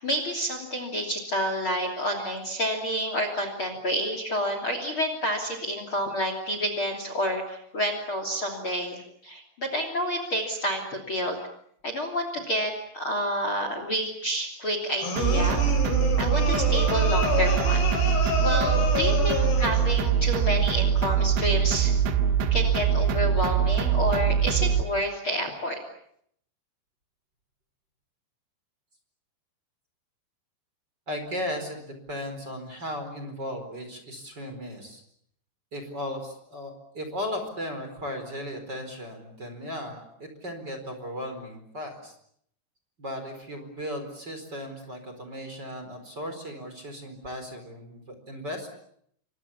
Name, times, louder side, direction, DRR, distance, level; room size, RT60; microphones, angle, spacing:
voice 1, 0.0-11.4 11.8-15.6 16.2-18.0 18.4-21.9 22.5-25.8, equal, 30° left, 6 dB, 3.3 m, -29 dB
sound 1, 15.0-19.9, left 4 dB, 65° left, 7.9 m, -29 dB
sound 2, 15.2-24.8, right 8 dB, 85° right, 3.9 m, -23 dB
voice 2, 31.1-35.0 35.7-42.1 43.0-48.7, left 1 dB, 25° right, 6 dB, 4.5 m, -36 dB
29.0 x 25.5 x 7.2 m, 0.69 s
omnidirectional pair, 5.2 m